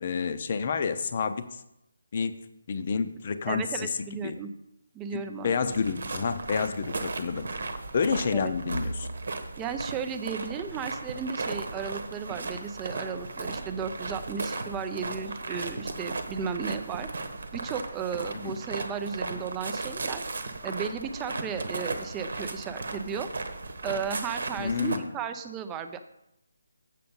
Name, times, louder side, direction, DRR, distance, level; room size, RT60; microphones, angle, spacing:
voice 1, 0.0-1.6 2.1-2.3 2.7-3.9 4.2-4.4 5.1-7.5 7.9-9.1 18.4-18.5 24.6-25.1, left 5 dB, 40° left, 10 dB, 0.7 m, -29 dB
voice 2, 3.5-4.5 4.9-5.6 8.3-8.5 9.6-17.1 17.5-20.2 20.6-23.3 23.8-26.0, right 6 dB, 15° right, 8 dB, 0.6 m, -34 dB
sound 1, 5.7-25.0, right 3 dB, 60° right, 1.1 m, -36 dB
7.5 x 6.8 x 5.4 m, 0.84 s
figure-of-eight pair, 150°, 0 cm